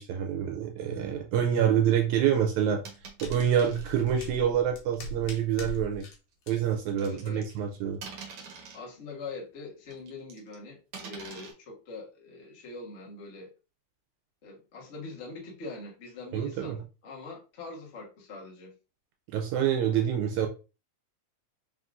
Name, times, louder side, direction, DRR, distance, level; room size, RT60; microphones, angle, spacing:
voice 1, 0.0-2.8 3.2-6.1 6.5-8.0 16.3-16.8 19.3-20.5, right 9 dB, 80° right, 3 dB, 1.9 m, -27 dB
sound 1, 2.6-6.2 6.4-6.5, left 1 dB, 65° left, 2.0 m, -41 dB
sound 2, 2.8-3.9 4.9-5.1 6.5-7.6 8.0-8.9 9.9-10.6 10.9-11.5, right 5 dB, 60° right, 1.6 m, -45 dB
voice 2, 7.0-7.5 8.7-13.5 14.4-18.7, left 3 dB, 85° left, -2 dB, 0.6 m, -43 dB
4.6 x 3.7 x 2.4 m, 0.31 s
omnidirectional pair, 3.5 m